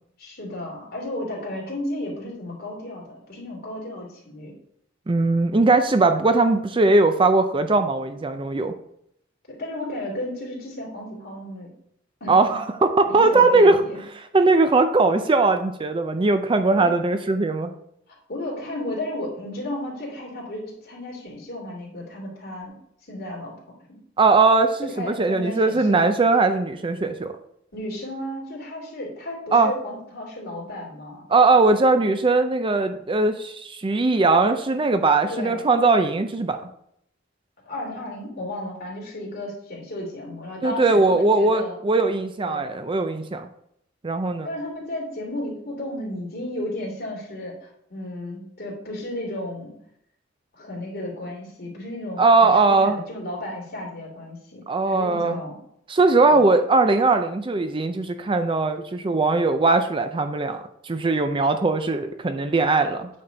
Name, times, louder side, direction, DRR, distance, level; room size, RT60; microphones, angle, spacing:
voice 1, 0.2-4.5 9.5-11.7 12.2-12.3 13.0-14.0 16.7-16.9 18.1-22.7 23.1-23.6 23.9-24.0 24.8-26.1 27.7-31.3 35.3-35.6 37.7-41.8 42.4-42.7 44.4-49.7 50.5-55.5 56.3-56.4, left 1 dB, 50° left, -3 dB, 2.9 m, -33 dB
voice 2, 5.1-8.7 12.3-13.8 14.3-17.7 24.2-27.3 29.5-29.7 31.3-36.6 40.6-43.5 44.0-44.5 52.2-53.0 54.7-55.4 55.9-63.1, right 3 dB, 25° right, 8 dB, 0.4 m, -20 dB
8.7 x 4.3 x 5.0 m, 0.72 s
head